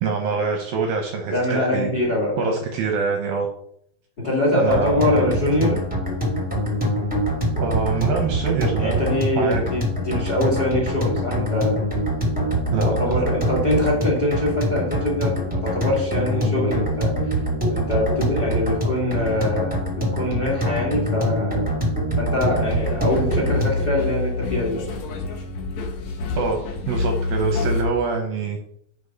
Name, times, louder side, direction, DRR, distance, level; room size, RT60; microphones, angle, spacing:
voice 1, 0.0-1.9 2.4-3.5 4.5-5.3 7.6-9.0 9.4-9.6 12.7-13.2 26.4-28.6, right 4 dB, 75° right, 4 dB, 2.1 m, -25 dB
voice 2, 1.3-2.6 4.2-5.8 8.8-11.8 12.8-17.1 17.7-21.7 22.2-25.0, left 1 dB, 30° left, -2 dB, 1.8 m, -23 dB
sound 1, 4.7-23.9, equal, 10° right, 0.5 m, -24 dB
sound 2, 22.7-27.8, left 3 dB, 85° left, 1.6 m, -27 dB
9.0 x 4.9 x 5.6 m, 0.69 s
omnidirectional pair, 5.4 m